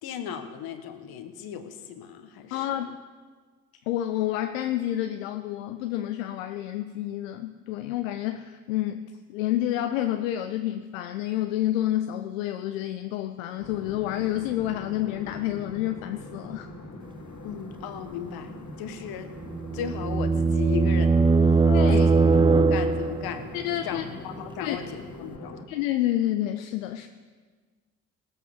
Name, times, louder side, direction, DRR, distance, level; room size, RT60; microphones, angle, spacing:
voice 1, 0.0-2.9 17.4-19.3 19.7-21.6 21.9-23.5 23.8-25.7, left 8 dB, 70° left, 8 dB, 1.3 m, -36 dB
voice 2, 2.5-3.0 3.9-16.7 21.7-22.1 23.5-24.0 24.6-24.8 25.7-27.1, left 13 dB, 85° left, 8 dB, 0.5 m, -29 dB
sound 1, 13.6-25.6, left 2 dB, 50° left, 2.4 m, -42 dB
sound 2, 19.4-23.4, right 4 dB, 15° right, 0.4 m, -21 dB
18.5 x 8.0 x 5.1 m, 1.5 s
hypercardioid pair, 45°, 38 cm